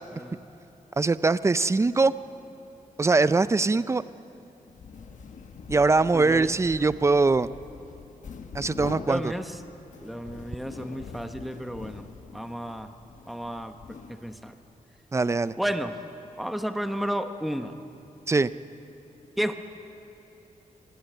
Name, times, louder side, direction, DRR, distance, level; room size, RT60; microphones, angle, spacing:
voice 1, 0.1-0.5 6.1-6.6 9.1-9.6 10.0-12.0 12.3-12.9 13.3-13.8 14.1-14.5 15.6-15.9 16.4-17.7 19.4-19.5, equal, ahead, 7 dB, 1.0 m, -32 dB
voice 2, 1.0-2.1 3.0-4.0 5.7-7.5 8.5-9.3 15.1-15.5 18.3-18.5, right 3 dB, 20° right, 15 dB, 0.5 m, -22 dB
sound 1, 4.6-14.6, left 5 dB, 65° left, 1.3 m, -44 dB
25.0 x 17.5 x 9.0 m, 2.9 s
wide cardioid pair, 120°, 14 cm